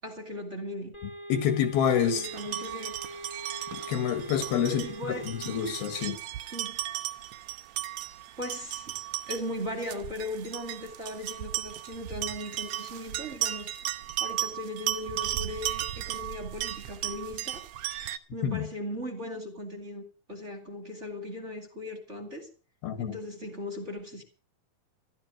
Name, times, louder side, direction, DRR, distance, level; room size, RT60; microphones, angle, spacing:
voice 1, 0.0-0.9 2.0-2.9 4.7-5.5 6.5-6.8 8.4-9.0 9.3-17.6 18.3-20.0 20.3-22.5 23.0-24.2, left 1 dB, 25° right, 2.0 m, -38 dB
sound 1, 0.9-6.1, equal, 15° left, 1.7 m, -43 dB
voice 2, 1.3-2.3 3.7-4.8 5.3-6.2 18.4-18.7 22.8-23.2, left 8 dB, 75° left, 3.6 m, -27 dB
sound 2, 2.0-18.2, right 13 dB, 75° right, 1.6 m, -36 dB
14.0 x 12.5 x 6.2 m
omnidirectional pair, 4.4 m